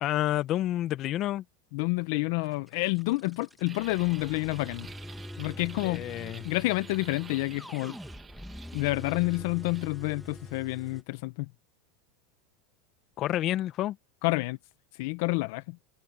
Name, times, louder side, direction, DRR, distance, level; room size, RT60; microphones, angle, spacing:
voice 1, 0.0-1.4 5.8-6.5 13.2-14.0, left 13 dB, 45° left, 1.2 m, -29 dB
voice 2, 1.7-4.9 5.4-6.0 6.4-7.9 8.7-11.5 14.2-14.6 14.9-15.6, left 23 dB, 70° left, 0.7 m, -29 dB
sound 1, 2.4-11.0, left 1 dB, 5° left, 1.6 m, -45 dB
sound 2, 3.6-9.9, right 6 dB, 20° right, 2.0 m, -49 dB
supercardioid pair, 125°, 0 cm